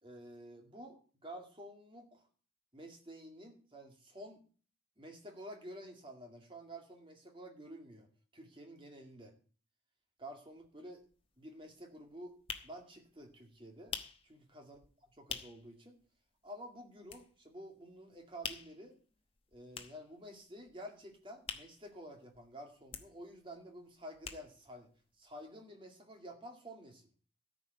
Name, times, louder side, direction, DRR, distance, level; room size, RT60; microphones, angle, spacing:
voice 1, 0.0-2.2 2.7-4.4 5.0-8.1 8.3-9.3 10.2-11.0 11.4-12.4 12.6-14.0 14.2-14.8 15.2-16.0 16.4-19.0 19.5-24.9 25.2-27.0, equal, 25° right, 3 dB, 2.2 m, -50 dB
sound 1, 10.6-10.7 11.0-15.8 16.1-16.2 16.5-17.7 18.0-22.5 22.7-24.8 25.1-25.2 25.4-25.5, left 6 dB, 30° left, 1.0 m, -46 dB
13.5 x 5.2 x 8.0 m, 0.41 s
head